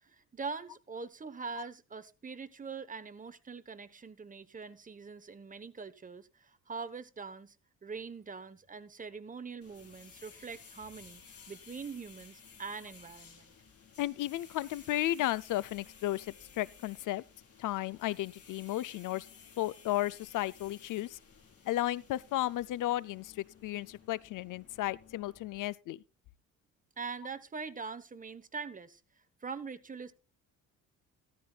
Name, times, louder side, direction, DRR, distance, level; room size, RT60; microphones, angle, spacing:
voice 1, 0.0-7.5 7.8-13.5 27.0-29.0 29.4-30.1, right 5 dB, 25° right, 1.0 m, -43 dB
sound 1, 9.6-25.7, left 6 dB, 45° left, 5.0 m, -56 dB
voice 2, 14.0-16.3 16.5-17.2 17.6-19.3 19.6-21.2 21.7-26.0, left 15 dB, 65° left, 0.5 m, -34 dB
15.0 x 13.5 x 2.4 m
cardioid pair, 110°, 34 cm